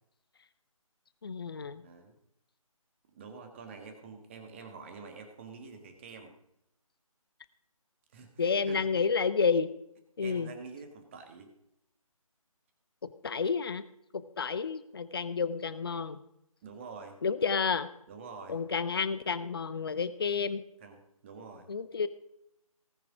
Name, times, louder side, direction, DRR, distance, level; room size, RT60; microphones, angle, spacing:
voice 1, 1.2-1.8 8.4-9.7 10.2-10.5 13.0-13.8 14.1-16.2 17.2-17.9 18.5-20.6 21.7-22.1, left 5 dB, 40° left, 14 dB, 0.7 m, -30 dB
voice 2, 1.8-2.1 3.1-6.3 8.1-8.9 10.2-11.5 16.6-17.2 18.1-18.6 20.8-21.7, right 4 dB, 20° right, 5 dB, 1.6 m, -47 dB
19.0 x 6.8 x 4.9 m, 0.79 s
figure-of-eight pair, 155°, 18 cm